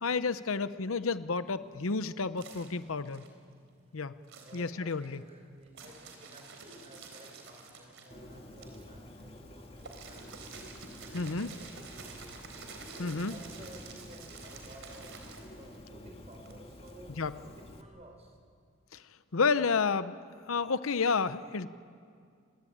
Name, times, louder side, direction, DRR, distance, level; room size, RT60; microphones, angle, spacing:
voice 1, 0.0-3.2 3.9-4.1 4.5-5.2 11.1-11.5 13.0-13.4 17.1-17.4 18.9-19.0 19.3-20.2 20.5-21.7, left 4 dB, 75° left, 13 dB, 0.8 m, -30 dB
sound 1, 1.5-3.8 4.2-16.9, right 4 dB, 65° right, 3.9 m, -50 dB
voice 2, 4.3-10.5 11.1-12.4 13.0-15.1 15.6-18.3, right 1 dB, 30° right, 4 dB, 4.9 m, -54 dB
Bird, 8.1-17.8, left 1 dB, 30° left, 1.9 m, -50 dB
28.5 x 21.0 x 8.8 m, 2.2 s
head